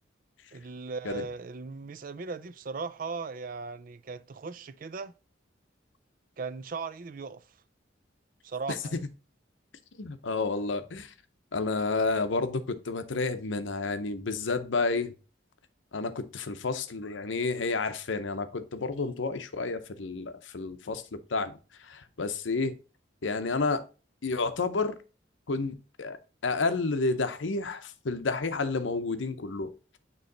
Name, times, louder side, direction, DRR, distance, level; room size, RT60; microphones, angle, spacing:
voice 1, 0.5-5.1 6.4-7.4 8.4-9.0, right 4 dB, 45° right, 0.4 m, -38 dB
voice 2, 10.0-11.1 11.5-15.1 15.9-22.7 23.2-23.8 24.2-24.9 25.5-26.2 26.4-29.7, left 3 dB, 80° left, 0.7 m, -30 dB
9.3 x 3.1 x 3.9 m
head